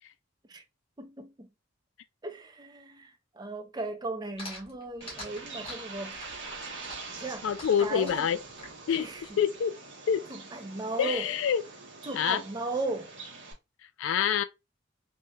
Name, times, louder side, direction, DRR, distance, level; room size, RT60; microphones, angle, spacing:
voice 1, 1.0-1.5 2.2-6.2 7.2-7.5 7.8-8.3 9.0-9.2 10.3-11.3 12.0-13.1, right 2 dB, 20° right, 0.5 m, -36 dB
sound 1, 4.4-9.3, left 1 dB, 30° left, 1.4 m, -44 dB
Bird, 5.0-13.5, right 3 dB, 70° right, 1.0 m, -44 dB
voice 2, 7.4-8.4 8.9-9.1 9.4-9.7 10.1-10.2 11.0-11.6 12.1-12.4 14.0-14.4, left 8 dB, 80° left, 0.3 m, -26 dB
3.2 x 2.6 x 2.2 m
head